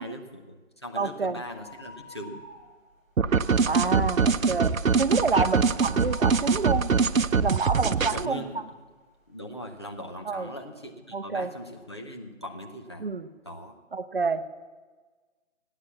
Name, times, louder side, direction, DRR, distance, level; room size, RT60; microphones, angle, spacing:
voice 1, 0.0-2.4 5.1-5.4 8.0-8.6 9.3-13.1 13.4-13.8, equal, 20° left, 1 dB, 0.6 m, -40 dB
voice 2, 0.9-1.4 3.7-6.9 7.4-8.4 10.3-10.5 11.1-11.5 13.0-13.3 13.9-14.5, right 4 dB, 45° right, 10 dB, 0.7 m, -28 dB
sound 1, 1.5-3.1 3.4-3.5 4.0-8.4 8.9-9.0 9.8-9.9 10.1-10.2, left 1 dB, ahead, 3.7 m, -47 dB
sound 2, 3.2-8.3, right 5 dB, 85° right, 0.7 m, -23 dB
15.5 x 9.8 x 7.4 m, 1.4 s
figure-of-eight pair, 150°, 39 cm